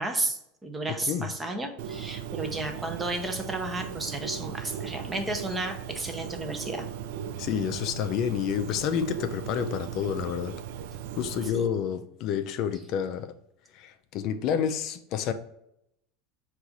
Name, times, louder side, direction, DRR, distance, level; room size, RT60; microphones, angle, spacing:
voice 1, 0.0-6.9 11.4-11.6, right 2 dB, 10° right, 0.6 m, -33 dB
Bird, 1.8-11.5, right 9 dB, 70° right, 0.3 m, -38 dB
voice 2, 7.4-10.5 11.2-13.3 13.7-15.3, left 8 dB, 50° left, 0.3 m, -29 dB
4.6 x 2.4 x 3.9 m
supercardioid pair, 140°, 0 cm